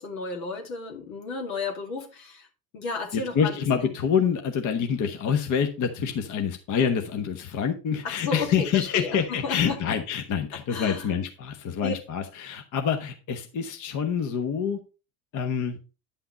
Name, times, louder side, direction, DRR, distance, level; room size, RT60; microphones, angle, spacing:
voice 1, 0.0-2.5 2.7-3.6 3.8-4.0 8.0-9.8 10.7-11.1 11.8-11.9, left 4 dB, 80° left, 2.6 m, -33 dB
voice 2, 3.1-14.8 15.3-15.8, left 7 dB, 45° left, 1.2 m, -26 dB
10.0 x 5.7 x 4.0 m
hypercardioid pair, 85°, 43 cm